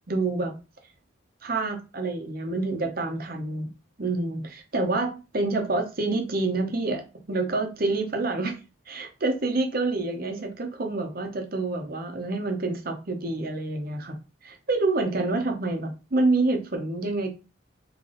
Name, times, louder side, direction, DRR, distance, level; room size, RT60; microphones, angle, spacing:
voice 1, 0.1-0.5 1.4-3.7 4.0-8.6 8.9-14.2 14.4-17.3, right 2 dB, 50° right, 1.0 m, -27 dB
3.4 x 3.2 x 3.8 m
head